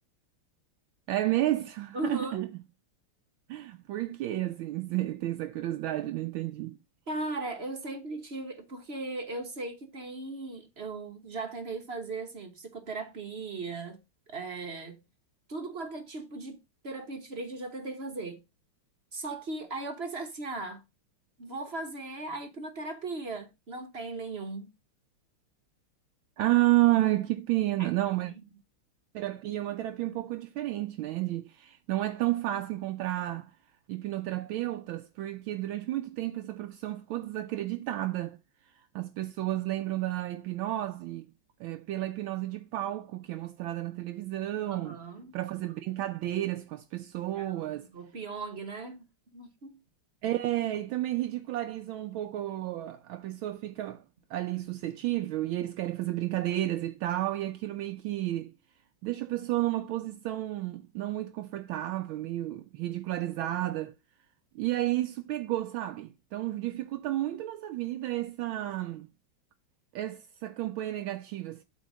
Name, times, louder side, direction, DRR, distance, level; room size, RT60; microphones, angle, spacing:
voice 1, 1.1-2.5 3.5-6.8 26.4-28.3 29.1-33.5 33.9-38.4 38.6-41.3 41.6-45.0 45.3-47.9 50.2-54.0 54.3-58.5 59.0-63.9 64.5-69.1 69.9-71.6, right 15 dB, 75° right, 1.3 m, -31 dB
voice 2, 1.9-2.5 7.1-14.0 14.3-15.0 15.5-16.6 16.8-18.4 19.1-20.8 21.4-24.7 27.8-27.9 44.7-45.3 47.4-49.1 49.3-49.8, right 3 dB, 40° right, 1.0 m, -38 dB
8.3 x 3.6 x 6.1 m
omnidirectional pair, 2.4 m